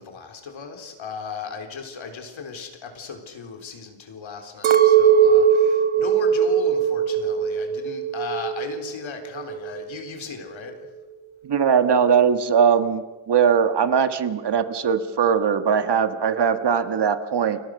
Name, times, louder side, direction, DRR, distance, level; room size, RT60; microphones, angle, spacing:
voice 1, 0.0-10.7, left 6 dB, 75° left, 5 dB, 4.0 m, -36 dB
Chink clink, 4.6-9.0 9.3-10.1, right 8 dB, 80° right, 1.6 m, -19 dB
voice 2, 11.4-17.6, right 7 dB, 60° right, 10 dB, 1.7 m, -20 dB
29.5 x 21.5 x 6.6 m, 1.2 s
wide cardioid pair, 135°, 47 cm